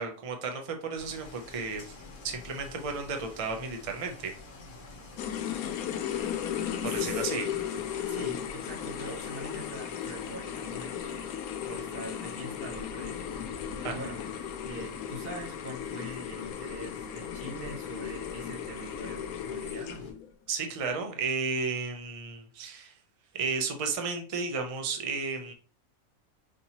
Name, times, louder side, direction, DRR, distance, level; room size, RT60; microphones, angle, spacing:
voice 1, 0.0-2.0 2.2-4.3 6.8-7.5 13.8-13.9 20.5-23.0 23.3-25.5, right 4 dB, 60° right, 4 dB, 0.3 m, -33 dB
sound 1, 1.0-20.1, left 2 dB, 45° left, 0.8 m, -48 dB
sound 2, 5.2-20.3, left 9 dB, 80° left, 1.0 m, -36 dB
voice 2, 6.8-7.5 8.1-14.2 14.6-20.1, right 2 dB, 45° right, 2 dB, 1.0 m, -43 dB
5.2 x 2.8 x 2.9 m, 0.39 s
omnidirectional pair, 1.5 m